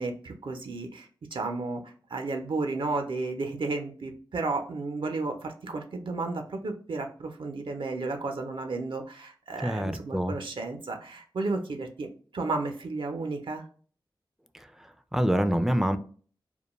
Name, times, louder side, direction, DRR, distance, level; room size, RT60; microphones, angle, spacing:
voice 1, 0.0-12.1 12.3-13.7, right 3 dB, 75° right, 4 dB, 0.5 m, -33 dB
voice 2, 9.6-10.4 14.5-14.7 15.1-16.0, equal, 5° right, 9 dB, 0.3 m, -26 dB
2.2 x 2.2 x 2.9 m, 0.43 s
cardioid pair, 45°, 9 cm